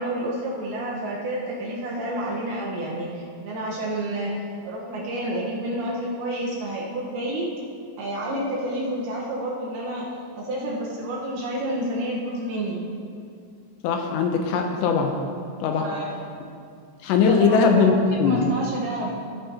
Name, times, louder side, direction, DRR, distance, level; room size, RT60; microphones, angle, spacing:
voice 1, 0.0-4.3 4.6-7.5 8.0-12.8 15.8-16.1 17.3-18.0 18.2-19.1, right 1 dB, 70° right, -4 dB, 2.7 m, -29 dB
voice 2, 13.8-15.1 15.6-15.9 17.0-18.4, left 5 dB, 80° left, 3 dB, 2.7 m, -20 dB
14.5 x 8.8 x 2.8 m, 2.3 s
omnidirectional pair, 5.3 m